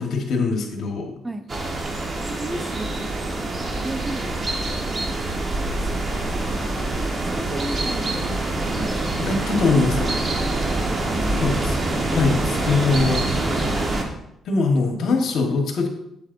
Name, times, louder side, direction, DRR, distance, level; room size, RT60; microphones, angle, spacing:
voice 1, 0.0-1.2 9.2-10.1 11.3-11.8 12.1-13.2 13.6-13.8 14.4-15.9, left 3 dB, 70° left, 3 dB, 1.4 m, -22 dB
sound 1, 1.5-14.0, right 2 dB, 40° right, 1.4 m, -25 dB
voice 2, 2.4-3.2 3.7-5.2 5.9-6.0 6.4-8.3 8.7-9.3 10.2-10.4 10.9-11.5 13.6-13.8, right 1 dB, 15° right, 8 dB, 0.6 m, -35 dB
8.4 x 7.7 x 2.7 m, 0.81 s
cardioid pair, 90°, 0 cm